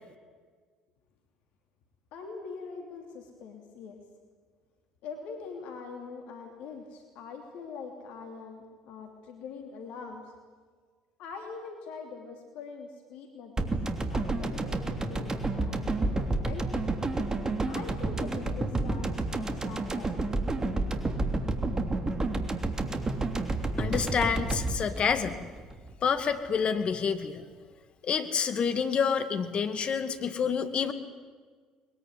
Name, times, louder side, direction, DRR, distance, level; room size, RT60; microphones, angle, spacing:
voice 1, 2.1-4.0 5.0-10.3 11.2-13.7 14.1-16.9 17.7-20.2, left 5 dB, 65° left, 4 dB, 3.0 m, -43 dB
sound 1, 13.6-25.9 26.2-26.3, right 2 dB, 25° right, 3.1 m, -30 dB
voice 2, 23.8-25.4 26.0-27.4 28.0-30.9, left 6 dB, 45° left, 10 dB, 2.2 m, -28 dB
21.5 x 21.0 x 9.4 m, 1.5 s
hypercardioid pair, 60°, 3 cm